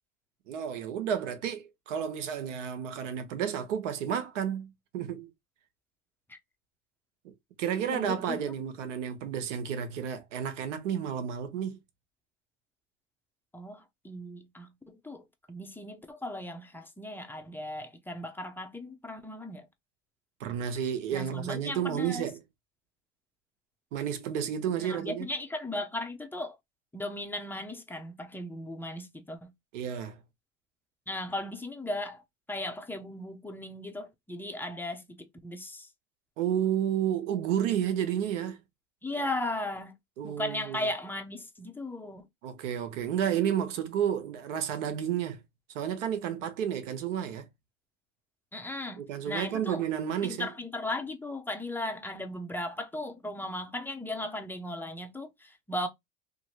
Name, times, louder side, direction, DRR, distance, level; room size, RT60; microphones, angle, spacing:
voice 1, 0.5-5.3 7.2-11.8 20.4-22.4 23.9-25.3 29.7-30.1 36.4-38.6 40.2-40.8 42.4-45.4 45.7-47.5 49.0-50.5, right 9 dB, 80° right, 0.9 m, -31 dB
voice 2, 7.9-8.4 13.5-19.7 21.1-22.2 24.8-26.6 26.9-29.5 31.1-32.2 32.5-35.9 39.0-39.9 40.2-42.3 48.5-49.8 50.2-55.9, left 1 dB, 5° left, 0.6 m, -37 dB
2.9 x 2.6 x 2.7 m
hypercardioid pair, 95°, 36 cm